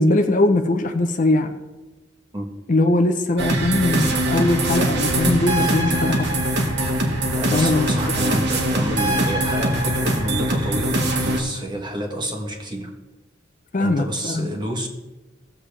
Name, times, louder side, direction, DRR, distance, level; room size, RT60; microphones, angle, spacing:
voice 1, 0.0-1.5 2.7-6.4 7.5-7.9 13.7-14.5, left 2 dB, 40° left, 7 dB, 0.7 m, -20 dB
sound 1, 3.4-11.4, right 1 dB, 60° right, 1.5 m, -22 dB
voice 2, 7.3-12.9 13.8-14.9, right 1 dB, 25° right, 3 dB, 1.4 m, -29 dB
18.0 x 7.2 x 3.3 m, 1.1 s
head